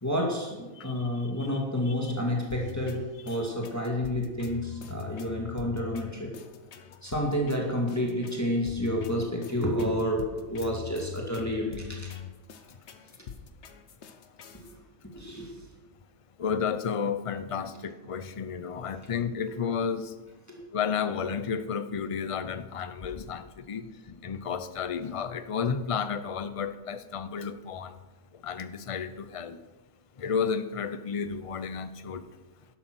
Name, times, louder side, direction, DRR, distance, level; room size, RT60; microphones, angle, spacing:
voice 1, 0.0-6.4 7.0-12.1 14.5-15.6 20.5-20.6, equal, 10° left, 0 dB, 2.2 m, -30 dB
sound 1, 2.5-14.7, left 8 dB, 55° left, 1.1 m, -43 dB
voice 2, 16.4-20.1 20.7-27.9 28.4-29.6 30.2-32.3, left 6 dB, 35° left, 11 dB, 0.5 m, -32 dB
12.0 x 11.0 x 6.2 m, 1.2 s
omnidirectional pair, 1.5 m